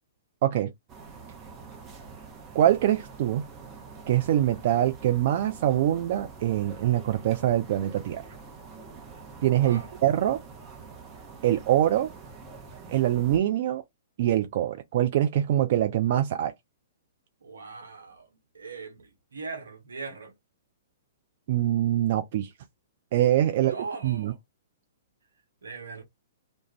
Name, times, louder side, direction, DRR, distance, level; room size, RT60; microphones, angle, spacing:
sound 1, 0.9-13.4, right 5 dB, 25° right, 0.7 m, -46 dB
voice 1, 2.6-3.5 4.1-8.2 9.4-10.4 11.4-12.1 12.9-13.8 14.2-16.5 21.5-22.5 23.1-23.8 24.0-24.3, right 12 dB, 50° right, 0.3 m, -24 dB
voice 2, 9.6-9.9 17.4-18.3 18.5-20.3 23.5-24.4 25.6-26.0, right 4 dB, 80° right, 0.9 m, -40 dB
2.3 x 2.0 x 3.2 m
hypercardioid pair, 120°, 0 cm